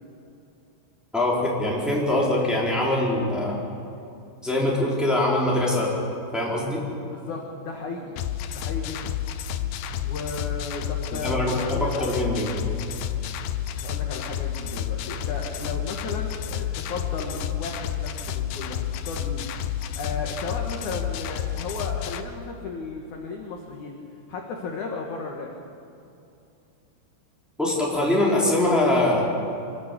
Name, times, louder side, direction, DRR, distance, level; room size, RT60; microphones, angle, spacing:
voice 1, 1.1-3.6 4.4-5.9 6.3-6.8 11.2-12.5 27.6-29.2, left 1 dB, ahead, -4 dB, 3.3 m, -23 dB
voice 2, 7.1-8.2 8.5-9.1 10.0-12.4 13.8-19.5 19.9-24.0 24.3-25.5, left 4 dB, 60° left, 1 dB, 2.2 m, -35 dB
sound 1, 8.2-22.2, left 9 dB, 85° left, 2.2 m, -30 dB
25.0 x 14.5 x 8.5 m, 2.7 s
omnidirectional pair, 5.4 m